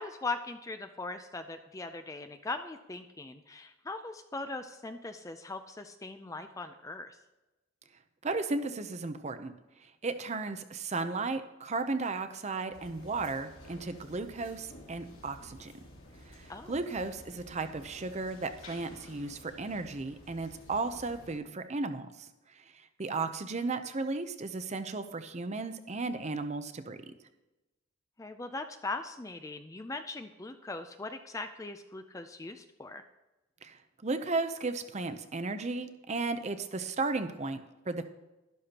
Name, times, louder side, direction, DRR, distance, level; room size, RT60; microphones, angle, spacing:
voice 1, 0.0-7.2 16.5-16.8 23.1-23.3 28.2-33.0, left 3 dB, 15° left, 8 dB, 0.4 m, -40 dB
voice 2, 8.2-9.5 10.0-15.7 16.3-22.3 23.0-27.0 33.6-38.1, right 3 dB, 30° right, 9 dB, 0.6 m, -35 dB
sound 1, 12.7-21.4, left 1 dB, 65° left, 2.7 m, -52 dB
12.0 x 12.0 x 2.9 m, 1.0 s
head